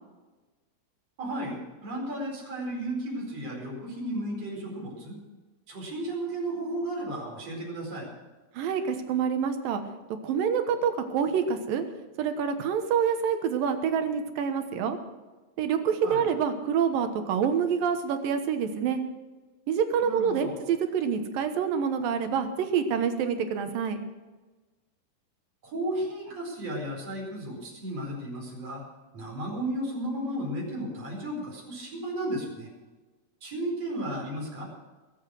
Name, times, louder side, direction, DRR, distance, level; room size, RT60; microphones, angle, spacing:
voice 1, 1.2-5.2 5.7-8.1 16.0-16.3 20.0-20.6 25.6-28.8 29.1-32.7 33.4-34.6, right 1 dB, 45° right, -2 dB, 5.7 m, -34 dB
voice 2, 8.6-9.8 10.2-11.8 12.2-15.0 15.6-19.0 19.7-24.0, right 7 dB, 85° right, 8 dB, 2.9 m, -27 dB
22.0 x 8.0 x 6.3 m, 1.3 s
omnidirectional pair, 3.9 m